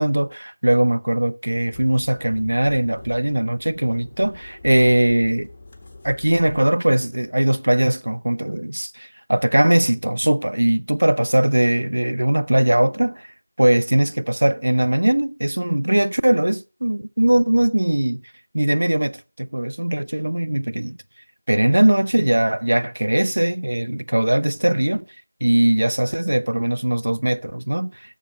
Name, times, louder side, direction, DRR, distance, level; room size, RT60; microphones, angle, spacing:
voice 1, 0.0-5.5 6.0-13.3 13.6-18.2 18.5-21.0 21.5-25.0 25.4-27.9, right 1 dB, 85° right, 0.7 m, -20 dB
sound 1, 1.7-6.8, left 3 dB, 20° left, 1.7 m, -45 dB
11.5 x 7.1 x 5.0 m
figure-of-eight pair, 175°, 0 cm